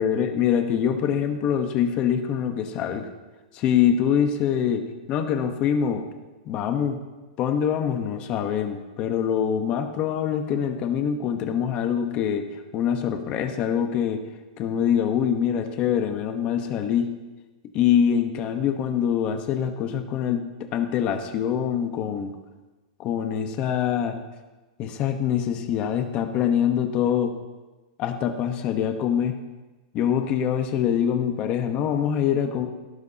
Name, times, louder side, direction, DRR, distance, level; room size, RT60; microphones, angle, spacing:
voice 1, 0.0-3.1 3.5-6.1 6.5-7.0 7.4-12.5 12.7-14.2 14.6-17.1 17.7-22.3 23.0-24.2 24.8-27.4 28.0-29.3 29.9-32.7, left 8 dB, 30° left, 6 dB, 1.1 m, -24 dB
17.5 x 10.5 x 2.9 m, 1.2 s
supercardioid pair, 160°, 4 cm